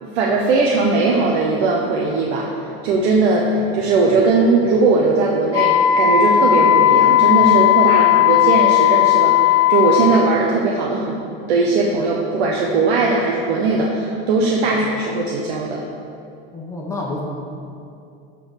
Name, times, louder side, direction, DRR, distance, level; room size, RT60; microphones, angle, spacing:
voice 1, 0.0-2.5 2.8-11.2 11.5-15.8, right 3 dB, 85° right, -2 dB, 1.2 m, -19 dB
Wind instrument woodwind instrument, 5.5-10.3, left 11 dB, 80° left, 0.6 m, -15 dB
voice 2, 16.5-17.2, left 2 dB, 10° left, -2 dB, 1.2 m, -29 dB
12.0 x 4.3 x 6.6 m, 2.5 s
supercardioid pair, 150°, 31 cm